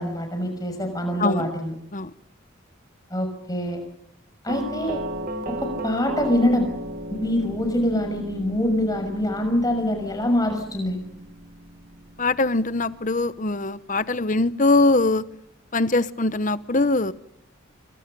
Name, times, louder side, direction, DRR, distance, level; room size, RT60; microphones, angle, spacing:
voice 1, 0.0-1.7 3.1-3.8 4.4-5.0 5.5-6.7 7.1-11.0, left 1 dB, 20° left, 6 dB, 6.2 m, -24 dB
voice 2, 1.2-1.5 1.9-2.1 12.2-15.3 15.7-17.1, left 2 dB, 35° left, 15 dB, 0.9 m, -22 dB
Doorbell, 4.5-13.3, right 1 dB, 45° right, 1.8 m, -36 dB
28.0 x 25.5 x 5.4 m, 0.75 s
head